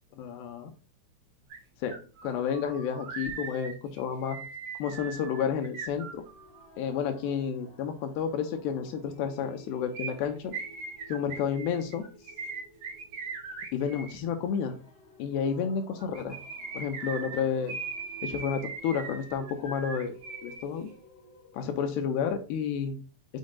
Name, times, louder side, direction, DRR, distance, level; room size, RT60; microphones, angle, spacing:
voice 1, 0.2-0.7 1.8-2.0 2.2-4.4 4.8-6.2 6.8-10.5 11.1-12.0 13.7-14.8 15.2-16.4 16.7-17.8 18.2-20.1 20.4-20.9 21.5-23.0, left 7 dB, 80° left, 5 dB, 2.6 m, -31 dB
sound 1, 1.5-1.6 1.9-6.6 9.9-14.2 16.0-20.6 20.9-21.0, right 4 dB, 55° right, 3.2 m, -40 dB
sound 2, 5.8-21.8, right 1 dB, 30° left, 2.7 m, -54 dB
6.9 x 6.4 x 2.2 m, 0.36 s
omnidirectional pair, 5.5 m